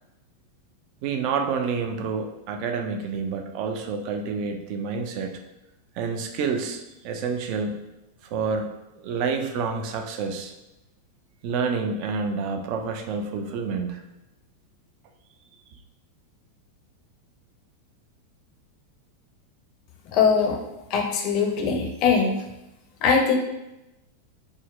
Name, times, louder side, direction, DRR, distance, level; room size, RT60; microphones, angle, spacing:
voice 1, 1.0-5.4 6.0-7.9 8.2-10.5 11.4-14.0, right 5 dB, 45° right, 5 dB, 0.4 m, -28 dB
voice 2, 20.1-20.6 20.9-22.4 23.0-23.4, left 5 dB, 40° left, 2 dB, 0.5 m, -21 dB
3.7 x 2.0 x 2.4 m, 0.94 s
figure-of-eight pair, 90°, 0 cm